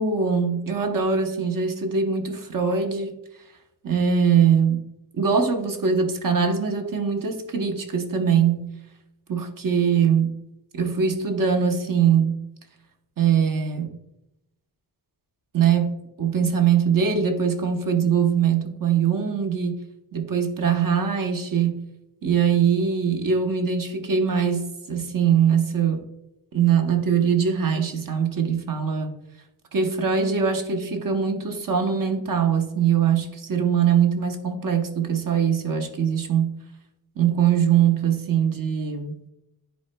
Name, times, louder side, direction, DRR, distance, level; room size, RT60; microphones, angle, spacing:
voice 1, 0.0-3.2 3.8-4.8 5.1-8.7 9.3-10.4 10.7-12.4 13.2-14.0 15.5-19.8 20.1-21.9 22.2-26.1 26.5-29.2 29.7-36.6 37.2-39.2, right 7 dB, 50° right, 0.9 m, -22 dB
10.5 x 4.3 x 2.2 m
wide cardioid pair, 115°, 42 cm